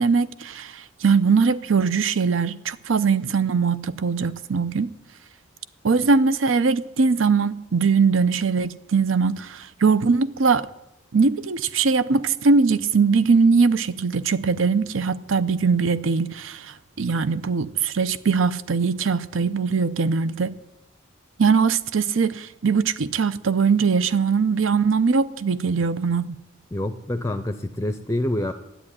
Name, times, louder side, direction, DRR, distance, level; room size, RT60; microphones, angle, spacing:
voice 1, 0.0-4.9 5.8-10.7 11.1-20.6 21.4-26.4, right 5 dB, 80° right, 0.6 m, -21 dB
voice 2, 26.7-28.5, left 1 dB, 15° left, 0.5 m, -26 dB
11.0 x 8.7 x 10.0 m
head